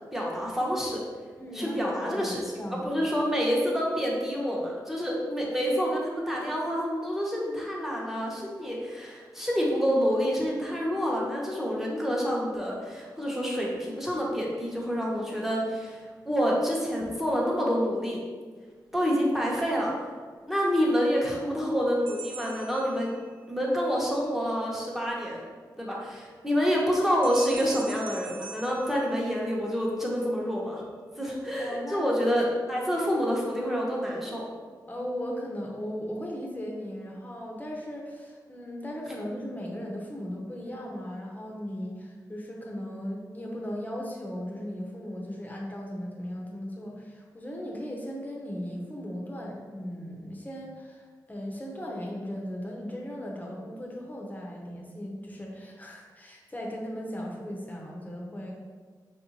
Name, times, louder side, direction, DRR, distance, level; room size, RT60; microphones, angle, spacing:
voice 1, 0.1-1.0 1.5-2.4 2.7-16.0 16.2-18.2 18.9-19.9 20.5-23.1 23.5-25.5 25.8-30.8 31.2-34.4, equal, 5° right, -4 dB, 0.9 m, -28 dB
voice 2, 1.4-3.0 31.6-32.1 32.4-32.7 34.9-58.5, equal, 20° left, -1 dB, 0.7 m, -37 dB
sound 1, 22.1-23.6 27.2-29.7, right 5 dB, 85° right, 0.4 m, -44 dB
4.7 x 2.5 x 3.0 m, 1.5 s
cardioid pair, 80°, 8 cm